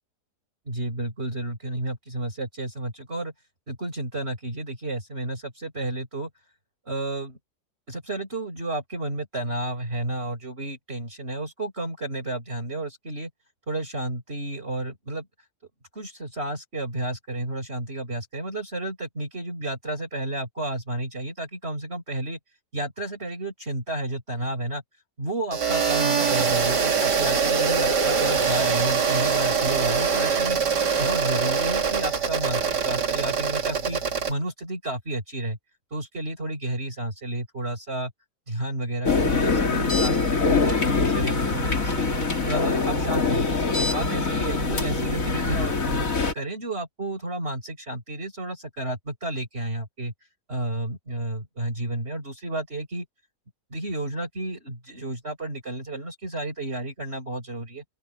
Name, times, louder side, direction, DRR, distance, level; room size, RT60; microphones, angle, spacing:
voice 1, 0.7-3.3 3.7-6.3 6.9-7.4 7.9-13.3 13.7-15.3 15.9-22.4 22.7-24.8 25.2-30.6 31.0-34.0 34.3-35.6 35.9-38.1 38.5-42.1 42.5-46.1 46.3-50.1 50.5-53.1 53.7-57.8, right 1 dB, 35° right, 5.9 m, -31 dB
sound 1, 25.5-34.3, right 6 dB, 85° right, 2.9 m, -23 dB
sound 2, 39.0-46.3, left 4 dB, 55° left, 2.9 m, -24 dB
open air
omnidirectional pair, 1.8 m